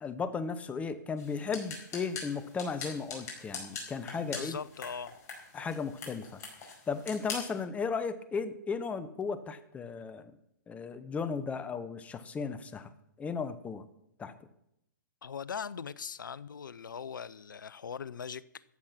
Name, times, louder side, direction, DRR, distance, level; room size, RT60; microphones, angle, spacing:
voice 1, 0.0-4.6 5.5-10.3 10.7-12.9 13.2-13.8 14.2-14.3, left 5 dB, 15° left, 0.9 m, -35 dB
sound 1, 1.2-7.6, left 4 dB, 30° left, 4.8 m, -43 dB
voice 2, 4.1-5.2 15.2-18.6, left 6 dB, 85° left, 0.6 m, -40 dB
14.5 x 8.8 x 5.9 m
hypercardioid pair, 135°, 10 cm